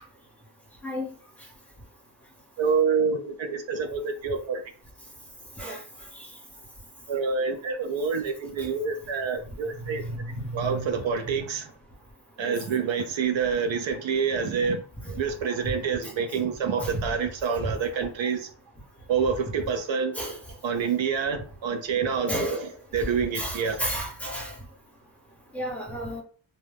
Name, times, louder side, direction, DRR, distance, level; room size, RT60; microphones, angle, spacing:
voice 1, 2.6-4.6 7.1-10.0 10.5-11.7 12.4-14.8 15.2-18.5 19.1-20.1 20.6-22.6 22.9-23.8, right 5 dB, 65° right, 0.5 m, -27 dB
voice 2, 22.3-22.7 23.4-24.5 25.5-26.2, equal, 5° left, 0.9 m, -31 dB
2.2 x 2.0 x 3.3 m
wide cardioid pair, 95°, 49 cm